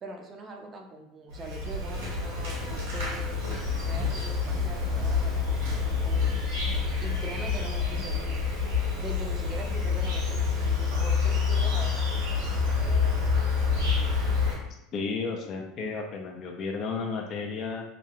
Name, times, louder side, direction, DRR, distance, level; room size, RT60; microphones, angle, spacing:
voice 1, 0.0-3.4 3.8-6.4 7.0-8.5 9.0-13.1, right 2 dB, 35° right, 2 dB, 0.5 m, -43 dB
Insect, 1.3-14.6, left 5 dB, 80° right, 1.3 m, -27 dB
voice 2, 14.9-17.8, left 4 dB, 50° left, 2 dB, 0.5 m, -33 dB
3.0 x 2.3 x 2.6 m, 0.84 s
hypercardioid pair, 85°, 0 cm